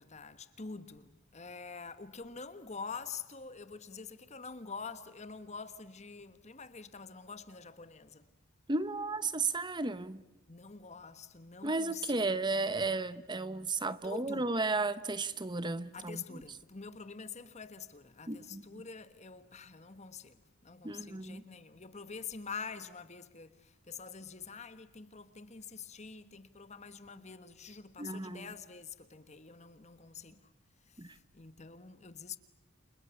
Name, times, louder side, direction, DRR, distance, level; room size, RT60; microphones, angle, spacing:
voice 1, 0.0-8.2 10.5-12.9 14.0-14.5 15.9-20.4 20.6-30.4 30.9-32.4, left 5 dB, 30° left, 1.3 m, -46 dB
voice 2, 8.7-10.2 11.6-16.4 18.3-18.8 20.8-21.4 28.0-28.5 31.0-31.1, right 3 dB, 20° right, 0.9 m, -34 dB
30.0 x 27.5 x 7.1 m
head